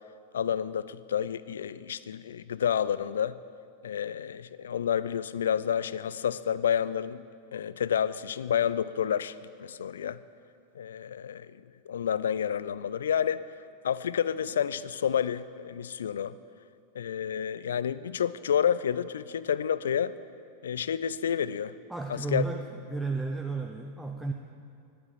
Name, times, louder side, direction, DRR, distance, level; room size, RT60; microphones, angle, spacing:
voice 1, 0.3-3.4 3.8-7.2 7.5-10.2 10.8-11.6 11.9-13.4 13.8-16.4 16.9-20.1 20.6-21.7 22.1-22.4, left 8 dB, 65° left, 17 dB, 0.3 m, -29 dB
voice 2, 21.9-24.3, right 3 dB, 5° right, 2 dB, 0.6 m, -33 dB
10.5 x 8.5 x 7.1 m, 2.4 s
figure-of-eight pair, 90°, 0 cm